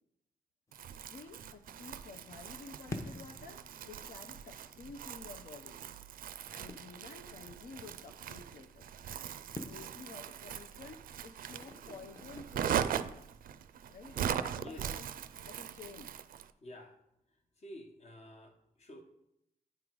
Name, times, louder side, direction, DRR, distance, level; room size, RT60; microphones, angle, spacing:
sound 1, 0.7-13.3, left 2 dB, 20° left, 0.7 m, -52 dB
Crumpling crinkling, 0.7-16.5, right 9 dB, 80° right, 0.4 m, -40 dB
voice 1, 1.1-5.8 6.5-8.9 9.7-13.3 13.9-15.0 15.4-16.1, left 4 dB, 80° left, 4 dB, 0.6 m, -51 dB
voice 2, 16.6-17.0 17.6-19.0, left 1 dB, 50° left, 4 dB, 1.2 m, -50 dB
9.5 x 3.8 x 4.6 m, 0.79 s
wide cardioid pair, 145°, 15 cm